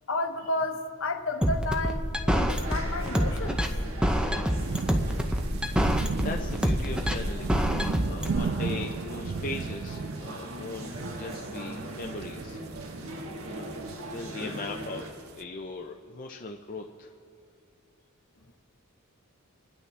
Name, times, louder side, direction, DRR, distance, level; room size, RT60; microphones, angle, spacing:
voice 1, 0.1-3.7, left 2 dB, 60° left, 6 dB, 1.0 m, -32 dB
sound 1, 1.4-8.4, equal, 5° right, 0.7 m, -26 dB
sound 2, 2.5-15.1, right 1 dB, 65° right, 1.6 m, -40 dB
sound 3, 4.6-15.4, right 5 dB, 45° right, 0.3 m, -36 dB
voice 2, 6.2-7.6 8.0-12.6 13.5-13.7 14.0-17.1, left 3 dB, 40° left, 1 dB, 0.6 m, -39 dB
25.5 x 11.0 x 3.4 m, 2.6 s
head